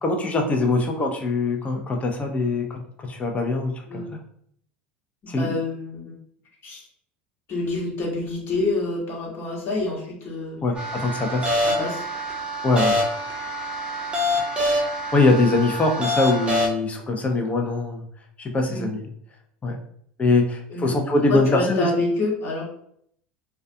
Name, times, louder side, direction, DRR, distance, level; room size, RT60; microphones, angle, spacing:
voice 1, 0.0-4.1 5.3-5.6 10.6-11.5 12.6-13.0 15.1-18.0 18.4-19.1 19.6-19.8 20.2-21.9, left 2 dB, 25° left, 2 dB, 0.6 m, -22 dB
voice 2, 5.4-6.2 6.6-6.8 7.5-10.6 11.6-12.0 18.7-18.9 20.7-20.9 21.3-22.7, left 2 dB, 45° left, -3 dB, 1.1 m, -27 dB
sound 1, 10.8-16.7, left 1 dB, 20° right, 0.7 m, -25 dB
2.3 x 2.3 x 2.6 m, 0.67 s
hypercardioid pair, 90°, 6 cm